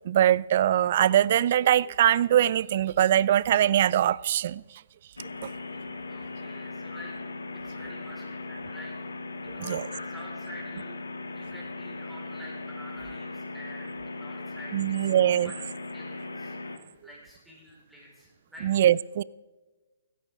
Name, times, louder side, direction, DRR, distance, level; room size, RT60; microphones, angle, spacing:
voice 1, 0.1-4.6 9.6-9.8 14.7-15.5 18.6-19.2, right 11 dB, 45° right, 0.3 m, -22 dB
sound 1, 5.2-16.8, left 3 dB, 80° left, 1.5 m, -38 dB
voice 2, 6.1-7.1 7.5-9.0 9.4-11.0 11.3-15.6 15.9-16.6 16.8-18.8, equal, 5° right, 4.9 m, -48 dB
16.0 x 13.5 x 3.7 m
figure-of-eight pair, 130°, 0 cm